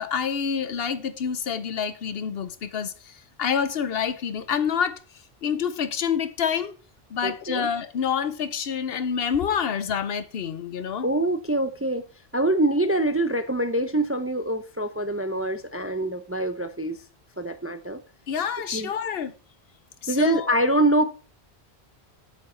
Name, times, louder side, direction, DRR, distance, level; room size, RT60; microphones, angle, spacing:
voice 1, 0.0-2.9 3.4-5.0 5.4-6.8 7.1-11.1 18.3-19.3 20.0-20.5, left 7 dB, 65° left, 0.9 m, -27 dB
voice 2, 7.2-7.7 11.0-12.0 12.3-17.0 17.4-18.0 18.7-18.9 20.1-21.0, right 1 dB, 20° right, 0.4 m, -24 dB
8.0 x 6.3 x 4.4 m
omnidirectional pair, 1.1 m